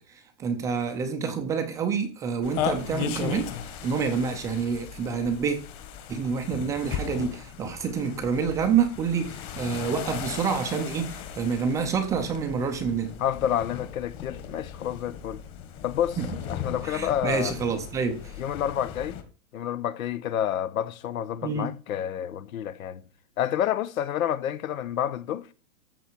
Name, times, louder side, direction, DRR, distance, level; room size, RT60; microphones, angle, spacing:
voice 1, 0.4-3.6 3.8-5.6 6.1-13.1 16.2-16.3 16.8-18.3 21.4-21.7, right 6 dB, 10° right, 0.5 m, -27 dB
sound 1, 2.4-19.2, left 9 dB, 30° left, 1.6 m, -37 dB
voice 2, 13.2-15.4 15.8-16.2 16.5-17.5 18.4-19.2 19.5-23.0 23.4-25.5, left 10 dB, 85° left, 1.2 m, -29 dB
14.0 x 7.6 x 4.5 m
supercardioid pair, 165°, 41 cm